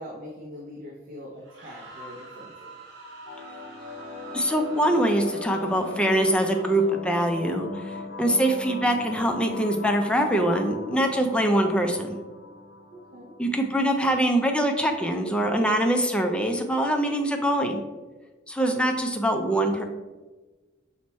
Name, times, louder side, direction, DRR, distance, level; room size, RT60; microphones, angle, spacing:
voice 1, 0.0-2.8 12.9-13.3, equal, 45° right, -2 dB, 0.6 m, -42 dB
sound 1, 1.4-7.1, right 3 dB, 65° right, 1.3 m, -47 dB
sound 2, 3.3-14.2, left 3 dB, 70° left, 0.9 m, -39 dB
voice 2, 4.3-12.2 13.4-17.8 18.5-19.8, right 1 dB, 5° left, 4 dB, 0.4 m, -23 dB
6.0 x 2.1 x 4.1 m, 1.3 s
head